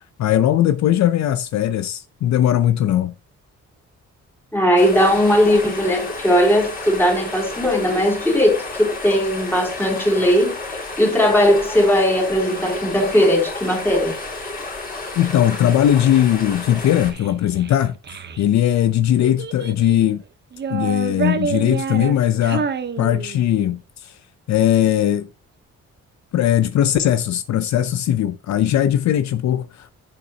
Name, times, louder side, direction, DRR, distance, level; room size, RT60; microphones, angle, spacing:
voice 1, 0.2-3.1 15.2-17.9 18.4-20.2 20.7-22.7 23.0-24.1 24.5-25.3 26.3-29.9, left 11 dB, 65° left, 0.7 m, -19 dB
voice 2, 4.5-14.2, equal, 5° left, 3.7 m, -18 dB
sound 1, 4.8-17.1, left 3 dB, 30° left, 4.2 m, -31 dB
Child speech kid speaking, 16.8-18.4 19.2-20.1 20.5-23.6, right 6 dB, 35° right, 1.0 m, -28 dB
10.5 x 7.5 x 2.9 m
cardioid pair, 135°, 30 cm